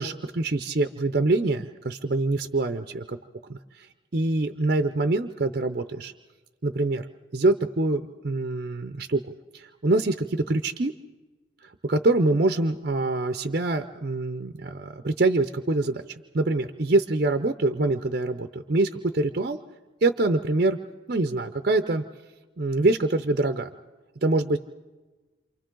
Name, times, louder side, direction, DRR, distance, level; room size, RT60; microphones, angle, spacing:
voice 1, 0.0-3.2 3.4-3.9 4.1-6.1 6.6-7.1 7.3-10.9 11.6-16.0 16.3-19.6 20.0-20.8 21.1-22.0 22.6-23.7 24.2-24.6, right 2 dB, 50° right, 8 dB, 0.6 m, -25 dB
28.5 x 27.0 x 3.8 m, 1.3 s
head